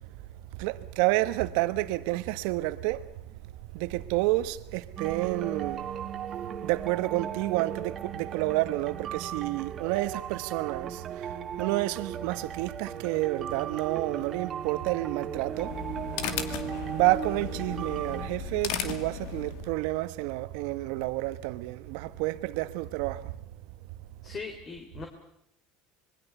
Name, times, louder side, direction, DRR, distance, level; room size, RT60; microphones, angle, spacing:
voice 1, 0.5-3.1 3.7-5.9 6.6-15.7 16.7-23.3, right 18 dB, 75° right, 1.3 m, -29 dB
sound 1, 5.0-18.3, right 8 dB, 40° right, 1.5 m, -37 dB
sound 2, 15.3-19.8, left 7 dB, 70° left, 2.3 m, -36 dB
voice 2, 24.2-25.1, left 4 dB, 35° left, 3.4 m, -39 dB
26.0 x 21.5 x 6.9 m
supercardioid pair, 105°, 0 cm